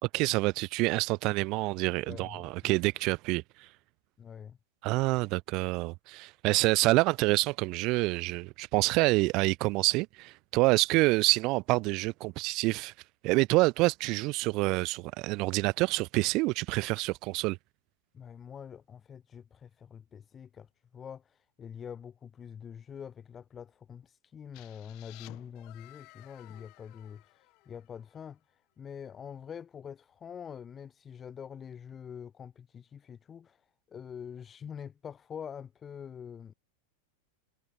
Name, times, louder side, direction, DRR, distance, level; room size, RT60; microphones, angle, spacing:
voice 1, 0.0-3.7 4.8-12.9 13.2-17.6, right 23 dB, 40° right, 0.8 m, -27 dB
voice 2, 2.0-2.7 4.2-4.6 18.1-27.4 27.7-28.4 28.8-33.6 33.9-36.5, left 7 dB, 20° left, 1.2 m, -45 dB
sound 1, 24.5-28.3, left 27 dB, 40° left, 5.2 m, -55 dB
figure-of-eight pair, 90°, 0 cm